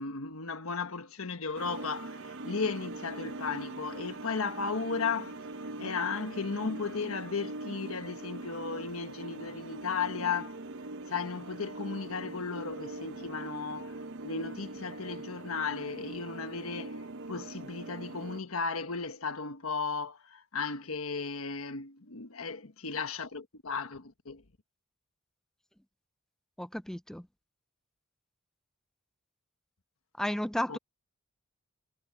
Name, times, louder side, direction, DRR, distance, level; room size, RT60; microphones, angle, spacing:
voice 1, 0.0-5.4 5.8-10.6 11.1-24.4 30.7-30.8, left 5 dB, 80° left, 1.3 m, -35 dB
sound 1, 1.5-18.4, right 2 dB, 60° right, 0.9 m, -42 dB
voice 2, 26.6-27.2 30.2-30.8, equal, ahead, 0.3 m, -33 dB
head